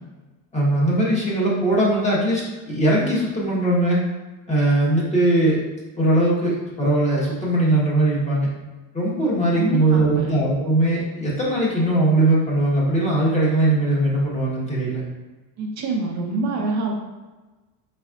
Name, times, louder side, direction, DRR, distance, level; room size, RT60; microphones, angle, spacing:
voice 1, 0.5-4.0 4.5-5.6 6.0-8.5 8.9-15.0, right 1 dB, 15° left, -6 dB, 1.3 m, -20 dB
voice 2, 9.5-10.3 15.6-16.9, right 3 dB, 40° right, 1 dB, 0.9 m, -25 dB
4.7 x 4.3 x 2.5 m, 1.2 s
cardioid pair, 140°, 41 cm